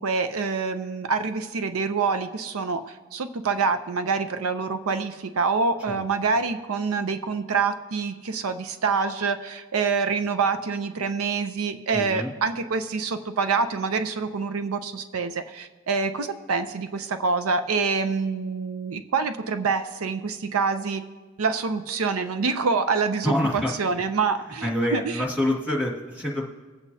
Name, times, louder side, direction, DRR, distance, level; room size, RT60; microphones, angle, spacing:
voice 1, 0.0-21.0 21.4-25.2, right 4 dB, 85° right, 9 dB, 0.6 m, -26 dB
voice 2, 11.9-12.3 23.2-23.7 24.6-26.4, left 1 dB, 5° right, -5 dB, 2.1 m, -26 dB
23.0 x 8.1 x 2.8 m, 1.3 s
head